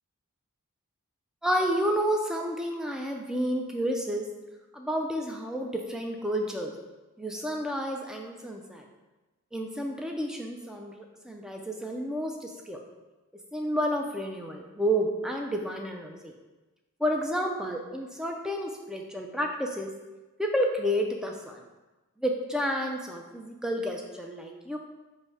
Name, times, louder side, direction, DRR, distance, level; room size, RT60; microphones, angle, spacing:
voice 1, 1.4-4.3 4.7-6.7 7.2-8.8 9.5-12.8 13.5-16.3 17.0-19.9 20.4-21.6 22.2-24.8, equal, 5° right, 1 dB, 0.3 m, -30 dB
5.2 x 2.1 x 4.8 m, 1.1 s
head